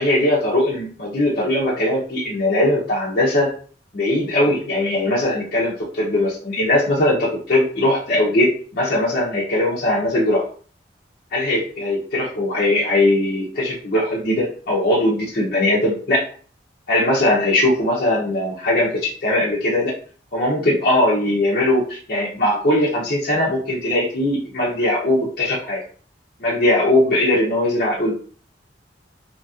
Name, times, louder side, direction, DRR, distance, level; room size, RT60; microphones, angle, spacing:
voice 1, 0.0-3.5 3.9-10.4 11.3-16.2 16.9-19.9 20.3-25.8 26.4-28.1, left 1 dB, 55° left, -6 dB, 0.7 m, -20 dB
2.8 x 2.8 x 2.4 m, 0.43 s
head